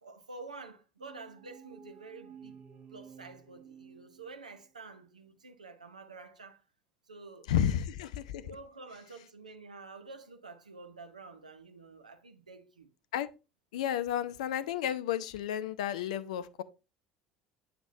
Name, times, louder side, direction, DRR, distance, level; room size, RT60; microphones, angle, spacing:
voice 1, 0.0-2.6 2.9-6.6 7.1-7.7 8.4-12.9, right 3 dB, 80° right, 0.7 m, -49 dB
sound 1, 1.0-4.7, right 7 dB, 35° right, 1.2 m, -53 dB
voice 2, 7.5-8.5 13.1-13.3 13.7-16.6, left 10 dB, 65° left, 0.4 m, -32 dB
7.9 x 5.9 x 2.6 m
figure-of-eight pair, 60°, 4 cm